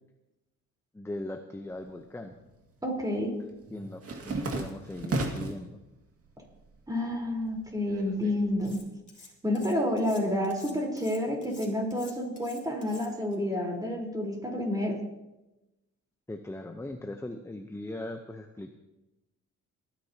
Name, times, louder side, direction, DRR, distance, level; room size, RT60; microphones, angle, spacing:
voice 1, 0.9-2.4 3.7-5.8 16.3-18.7, left 1 dB, 10° left, 6 dB, 0.8 m, -39 dB
sound 1, 1.8-2.6 2.9-5.7 6.1-6.8 7.1-8.7, right 2 dB, 50° right, 2.2 m, -35 dB
voice 2, 2.8-3.3 6.9-8.8 9.4-15.0, left 1 dB, 10° right, 0 dB, 4.0 m, -29 dB
Cutlery silverware, 8.6-9.3 9.5-13.4, left 3 dB, 25° left, 3.2 m, -50 dB
29.0 x 10.0 x 2.9 m, 1.0 s
cardioid pair, 90°, 30 cm